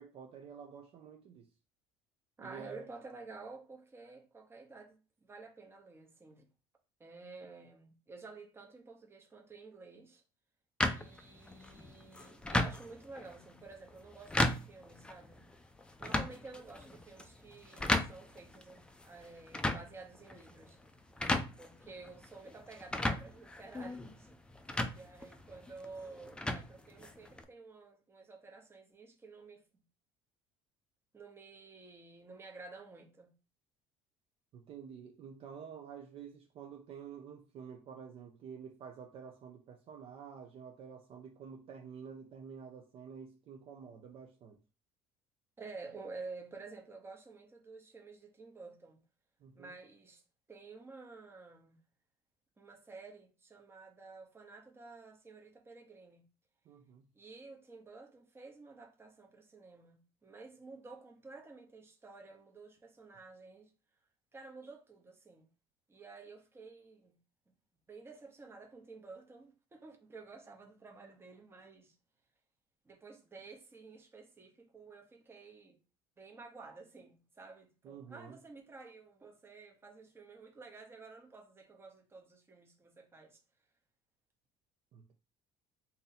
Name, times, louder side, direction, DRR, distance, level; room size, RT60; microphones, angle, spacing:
voice 1, 0.0-1.5 2.4-2.9 34.5-44.6 49.4-49.8 56.7-57.1 77.8-78.4 84.9-85.1, right 7 dB, 50° right, 0.5 m, -49 dB
voice 2, 2.4-6.4 7.0-10.2 10.9-15.4 16.0-20.8 21.6-24.4 24.9-29.6 31.1-33.3 45.6-49.0 49.5-50.2 50.5-51.8 52.6-56.2 57.1-63.7 64.3-65.5 65.9-67.1 67.9-71.9 72.8-75.8 76.2-83.4, right 3 dB, 20° right, 0.9 m, -52 dB
sound 1, 10.8-27.4, left 1 dB, 10° left, 0.4 m, -37 dB
2.7 x 2.6 x 4.0 m
cardioid pair, 110°, 13 cm